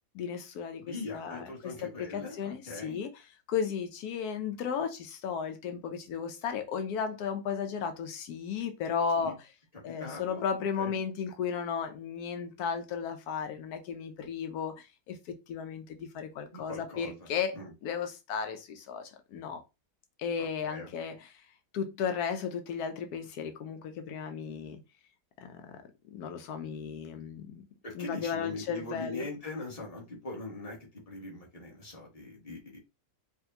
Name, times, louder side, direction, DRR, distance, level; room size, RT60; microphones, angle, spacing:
voice 1, 0.1-9.5 9.8-19.6 20.2-21.5 21.7-24.8 25.4-25.8 26.1-27.6 27.9-29.2, left 7 dB, 80° left, 1.1 m, -35 dB
voice 2, 0.8-3.0 9.2-9.3 9.8-10.4 10.8-11.0 16.5-17.3 17.5-17.7 20.4-20.9 27.8-30.8 31.1-32.8, left 2 dB, 25° left, 1.5 m, -41 dB
4.9 x 2.5 x 2.7 m
omnidirectional pair, 1.6 m